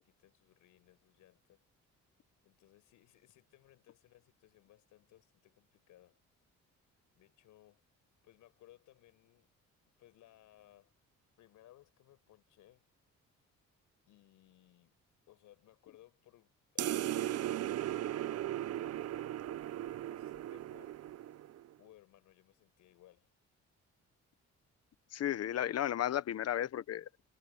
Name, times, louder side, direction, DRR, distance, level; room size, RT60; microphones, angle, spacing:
voice 1, 0.0-1.6 2.4-6.2 7.1-7.9 8.2-9.5 10.0-10.9 11.4-12.8 14.1-14.9 15.3-19.3 20.1-21.0 21.8-23.3, left 14 dB, 85° left, 6.0 m, -63 dB
sound 1, 16.8-21.7, right 13 dB, 55° right, 0.5 m, -37 dB
voice 2, 25.1-27.3, left 11 dB, 55° left, 0.9 m, -34 dB
cardioid pair, 90°, 30 cm